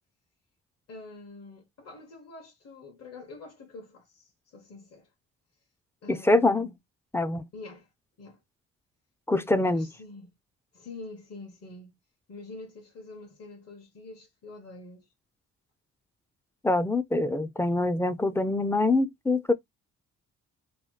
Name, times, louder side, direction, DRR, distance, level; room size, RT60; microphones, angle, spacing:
voice 1, 0.9-5.1 6.0-6.7 7.5-7.9 8.2-8.4 9.4-10.3 10.7-12.0 12.3-15.1, left 2 dB, 50° left, 1.2 m, -46 dB
voice 2, 6.1-6.7 7.1-7.4 9.3-9.9 16.6-19.5, left 2 dB, 10° left, 0.4 m, -24 dB
3.1 x 2.1 x 3.1 m
cardioid pair, 90°, 30 cm